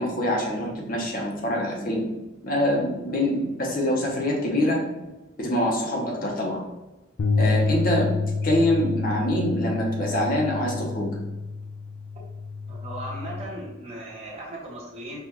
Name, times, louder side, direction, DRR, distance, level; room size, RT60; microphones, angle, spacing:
voice 1, 0.0-2.0 2.4-4.8 5.4-6.6 7.4-8.1 8.4-11.1, left 1 dB, 45° left, -2 dB, 0.9 m, -25 dB
sound 1, 7.2-13.5, left 3 dB, 65° left, 0.4 m, -28 dB
voice 2, 12.7-15.2, right 1 dB, 30° right, -4 dB, 0.9 m, -37 dB
5.5 x 2.4 x 3.0 m, 1.0 s
head